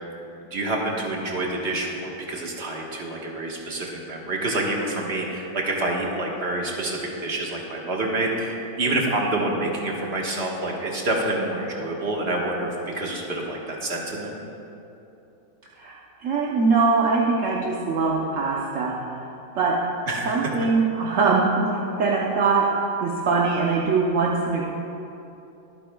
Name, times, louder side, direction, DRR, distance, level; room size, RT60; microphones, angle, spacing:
voice 1, 0.5-14.3 20.1-20.5, right 2 dB, 35° right, -2 dB, 1.5 m, -27 dB
voice 2, 16.2-19.2 19.5-19.8 20.2-22.7 23.0-24.6, right 4 dB, 55° right, -3 dB, 1.0 m, -22 dB
23.0 x 8.8 x 2.3 m, 2.9 s
omnidirectional pair, 2.1 m